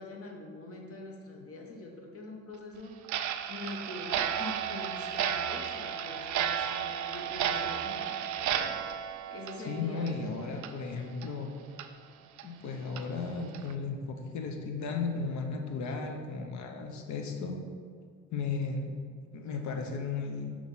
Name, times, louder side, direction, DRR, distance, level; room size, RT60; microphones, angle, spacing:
voice 1, 0.0-2.9 3.5-8.7 9.3-10.3, left 2 dB, 50° left, 0 dB, 1.2 m, -44 dB
Clock, 3.0-10.3 10.6-10.7 11.2-11.3 11.8-11.9 12.4-12.5 13.0-13.1 13.5-13.7, right 9 dB, 70° right, 0.4 m, -33 dB
voice 2, 9.6-11.5 12.4-17.6 18.3-19.0 19.3-20.6, left 4 dB, 70° left, 3 dB, 0.9 m, -35 dB
6.1 x 3.2 x 5.5 m, 2.1 s
cardioid pair, 90°, 30 cm